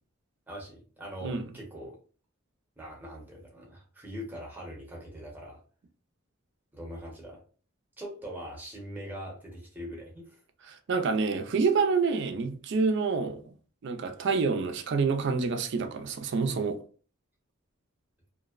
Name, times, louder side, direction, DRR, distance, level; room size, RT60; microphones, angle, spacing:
voice 1, 0.5-2.0 2.8-5.6 6.7-7.4 8.0-10.7, equal, 10° right, 0.7 m, -42 dB
voice 2, 10.7-13.4 13.8-16.8, right 4 dB, 55° right, 0.4 m, -27 dB
2.5 x 2.0 x 2.4 m
head